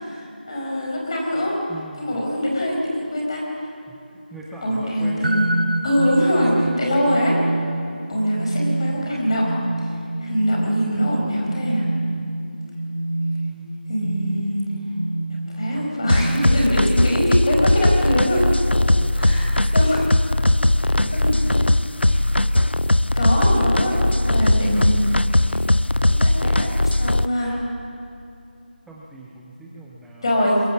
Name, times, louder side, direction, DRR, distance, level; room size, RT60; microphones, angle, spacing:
voice 1, 0.2-1.6 2.0-3.4 4.6-5.5 5.8-7.4 8.1-9.5 10.2-11.9 13.9-14.6 15.5-18.4 19.1-20.1 20.8-21.7 22.0-22.3 23.1-25.5 26.0-27.6 30.2-30.6, equal, 30° left, -1 dB, 4.9 m, -23 dB
voice 2, 1.7-2.3 3.9-5.6 19.0-19.4 20.9-21.1 28.9-30.3, right 2 dB, ahead, -5 dB, 0.5 m, -41 dB
sound 1, 5.2-17.0, right 2 dB, 60° right, 1.3 m, -27 dB
sound 2, 16.1-27.3, left 1 dB, 90° left, 0.7 m, -19 dB
22.5 x 22.5 x 7.4 m, 2.6 s
figure-of-eight pair, 170°, 6 cm